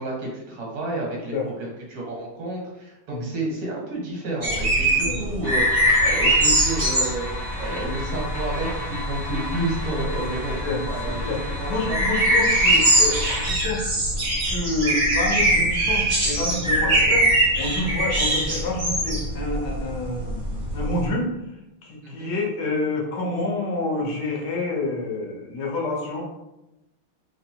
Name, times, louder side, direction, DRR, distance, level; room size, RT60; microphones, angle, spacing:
voice 1, 0.0-1.3 1.6-12.3 16.8-17.0 22.0-22.3, right 2 dB, 80° right, -3 dB, 2.1 m, -31 dB
sound 1, 4.4-21.1, right 1 dB, 40° right, 0.7 m, -22 dB
sound 2, 5.4-13.5, left 1 dB, 25° left, 0.5 m, -34 dB
voice 2, 11.7-13.9 14.5-17.2 17.6-21.3 21.8-26.2, left 2 dB, 60° left, -1 dB, 1.3 m, -28 dB
4.1 x 3.2 x 2.9 m, 0.93 s
omnidirectional pair, 2.3 m